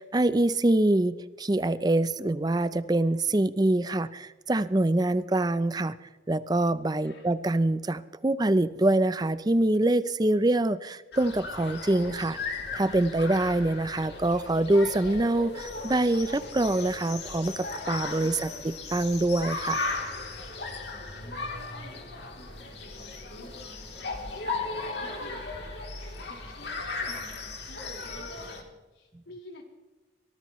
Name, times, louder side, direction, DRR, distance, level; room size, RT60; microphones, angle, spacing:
voice 1, 0.0-6.0 6.3-12.4 12.7-19.8, right 1 dB, 20° right, 14 dB, 0.5 m, -25 dB
voice 2, 7.0-7.3 20.9-29.6, left 1 dB, 80° left, 0 dB, 4.7 m, -52 dB
sound 1, 11.1-28.6, left 3 dB, 60° left, 3.2 m, -36 dB
24.0 x 18.5 x 3.1 m, 1.2 s
head